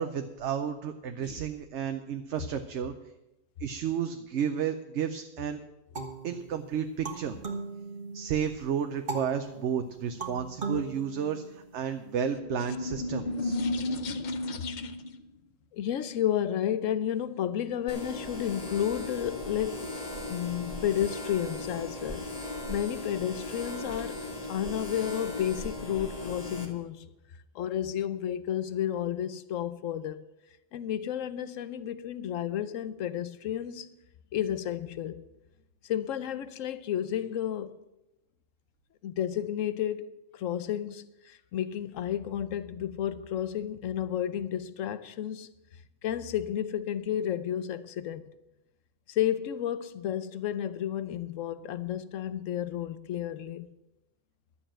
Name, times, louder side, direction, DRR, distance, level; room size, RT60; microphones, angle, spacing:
voice 1, 0.0-2.9 3.6-5.6 6.2-7.4 8.1-13.6, right 8 dB, 65° right, 1.0 m, -32 dB
sound 1, 5.9-8.4 9.1-11.9, right 3 dB, 40° right, 1.5 m, -38 dB
sound 2, 12.1-15.2, left 2 dB, 50° left, 0.6 m, -33 dB
voice 2, 15.7-19.9 20.3-22.3 22.7-24.2 24.5-27.0 27.5-30.2 30.7-34.0 34.3-35.2 35.8-37.7 39.0-45.5 46.0-48.3 49.1-53.6, left 10 dB, 75° left, 1.1 m, -32 dB
sound 3, 17.9-26.7, left 1 dB, 30° left, 1.9 m, -38 dB
11.5 x 7.0 x 8.8 m
omnidirectional pair, 1.4 m